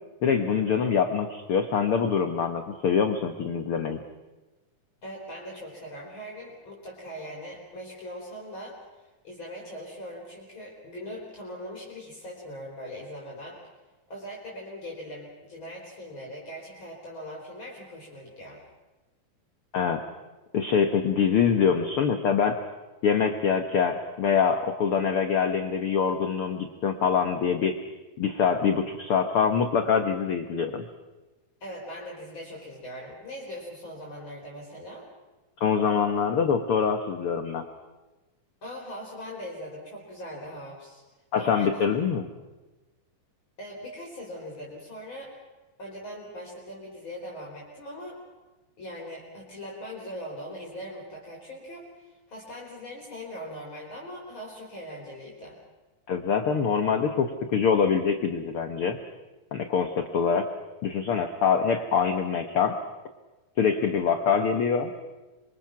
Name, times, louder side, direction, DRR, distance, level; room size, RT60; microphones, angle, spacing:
voice 1, 0.2-4.0 19.7-20.0 20.5-22.6 23.0-27.8 28.2-30.9 35.6-37.6 41.3-42.3 56.1-59.0 59.5-60.5 60.8-62.8 63.6-64.9, left 6 dB, 90° left, 7 dB, 1.2 m, -24 dB
voice 2, 5.0-13.6 14.1-18.6 31.6-35.1 38.6-41.0 41.4-41.8 43.6-45.3 45.8-48.2 48.8-55.6, equal, 30° left, -2 dB, 4.5 m, -40 dB
26.5 x 23.5 x 5.9 m, 1.1 s
omnidirectional pair, 4.3 m